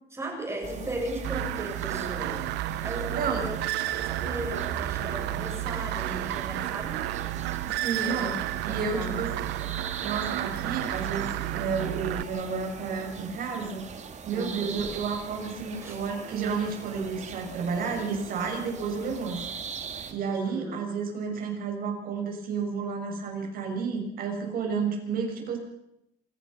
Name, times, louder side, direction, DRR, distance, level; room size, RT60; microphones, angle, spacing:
voice 1, 0.1-7.2 8.0-8.3 8.7-9.3 14.3-14.8 15.7-16.0 20.3-20.8, right 1 dB, 15° right, 1 dB, 7.6 m, -37 dB
sound 1, 0.6-20.1, right 6 dB, 45° right, 2.7 m, -41 dB
sound 2, 1.2-12.2, right 14 dB, 85° right, 0.9 m, -32 dB
voice 2, 3.2-3.5 7.6-9.3 10.0-13.8 14.3-19.4 20.1-25.6, right 5 dB, 60° right, 2 dB, 6.9 m, -31 dB
27.0 x 17.0 x 5.7 m, 0.81 s
cardioid pair, 110°, 17 cm